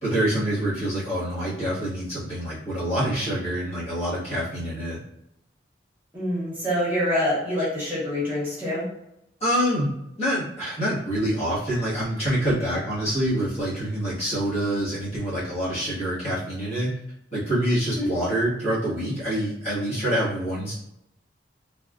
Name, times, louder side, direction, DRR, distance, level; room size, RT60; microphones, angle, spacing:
voice 1, 0.0-5.0 9.4-9.9 10.2-17.0 17.3-20.7, right 1 dB, 35° left, -10 dB, 1.3 m, -26 dB
voice 2, 6.1-8.8 17.9-18.1, left 1 dB, 10° right, -9 dB, 1.2 m, -26 dB
3.4 x 2.3 x 2.3 m, 0.81 s
head